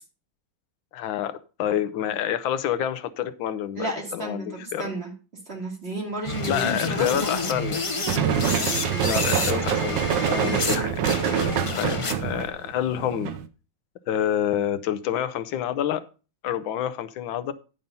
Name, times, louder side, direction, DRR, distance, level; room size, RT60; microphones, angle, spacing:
voice 1, 0.9-5.0 6.5-7.9 9.0-11.0 11.3-11.4 11.7-13.4 14.1-16.0 16.4-17.5, left 10 dB, 80° left, 1.5 m, -28 dB
voice 2, 3.7-5.1 5.5-7.5 8.4-9.3 10.3-10.7, right 2 dB, 30° right, 2.7 m, -33 dB
sound 1, 6.2-10.8 11.0-12.4, left 3 dB, 50° left, 0.3 m, -29 dB
sound 2, 8.1-13.5, right 9 dB, 70° right, 1.4 m, -25 dB
10.5 x 5.5 x 5.3 m
omnidirectional pair, 2.2 m